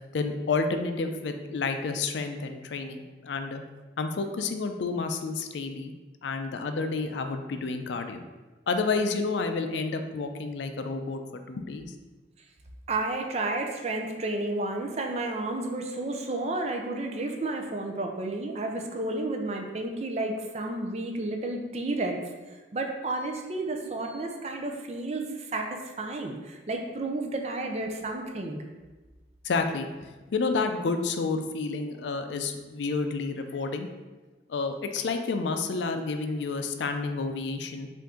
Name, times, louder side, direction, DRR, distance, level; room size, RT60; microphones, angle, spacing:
voice 1, 0.1-3.6 4.0-5.9 6.2-8.2 8.7-11.9 29.4-29.9 30.3-33.9 34.5-37.9, left 4 dB, 80° left, 7 dB, 0.4 m, -30 dB
voice 2, 12.9-22.2 22.7-28.6, right 2 dB, 35° right, 3 dB, 0.5 m, -31 dB
5.6 x 2.6 x 3.6 m, 1.2 s
head